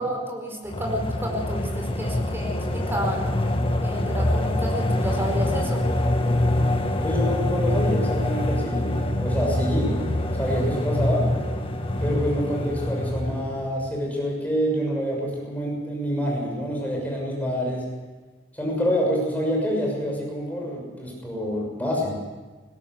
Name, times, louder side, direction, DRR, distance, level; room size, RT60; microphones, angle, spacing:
voice 1, 0.0-3.3 3.8-5.8, equal, 15° right, 1 dB, 4.7 m, -30 dB
sound 1, 0.7-13.8, left 1 dB, 30° left, 1.7 m, -25 dB
voice 2, 7.0-8.9 9.2-9.9 10.4-11.2 12.0-17.8 18.5-22.2, equal, 10° left, -1 dB, 6.4 m, -27 dB
20.0 x 17.0 x 8.1 m, 1.3 s
head